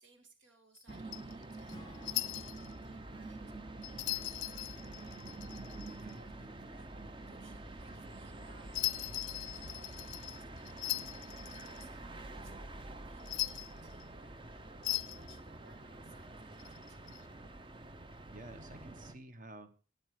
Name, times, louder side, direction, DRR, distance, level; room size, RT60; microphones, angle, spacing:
voice 1, 0.0-17.1, right 3 dB, 70° right, 5 dB, 2.2 m, -65 dB
sound 1, 0.8-2.7 3.8-6.1 8.7-11.8 13.2-14.0 14.8-15.4 16.6-17.2, left 16 dB, 70° left, 0.5 m, -39 dB
sound 2, 0.9-19.1, right 2 dB, 25° right, 0.7 m, -47 dB
Acoustic guitar / Strum, 1.7-5.3, left 2 dB, 20° left, 0.6 m, -61 dB
voice 2, 5.8-6.2 18.3-19.7, right 2 dB, 40° right, 10 dB, 1.2 m, -51 dB
12.0 x 9.0 x 4.9 m, 0.37 s
head